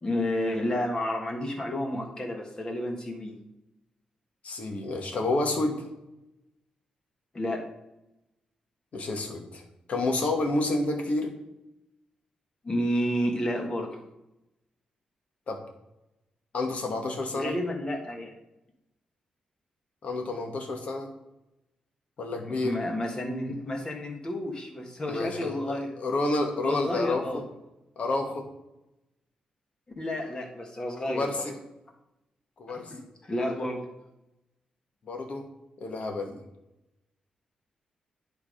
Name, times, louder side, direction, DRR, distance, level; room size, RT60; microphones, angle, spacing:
voice 1, 0.0-3.4 7.3-7.7 12.6-14.0 17.3-18.4 22.4-25.9 26.6-27.4 30.0-31.5 32.7-33.8, left 1 dB, 30° left, 2 dB, 1.5 m, -31 dB
voice 2, 4.4-5.9 8.9-9.6 9.9-11.3 15.5-15.6 16.5-17.5 20.0-21.1 22.2-22.8 25.1-25.5 26.0-27.2 28.0-28.5 31.1-31.5 32.6-32.9 35.1-35.5 35.8-36.4, left 2 dB, 60° left, 3 dB, 1.4 m, -29 dB
10.0 x 3.5 x 5.0 m, 0.92 s
cardioid pair, 100°, 3 cm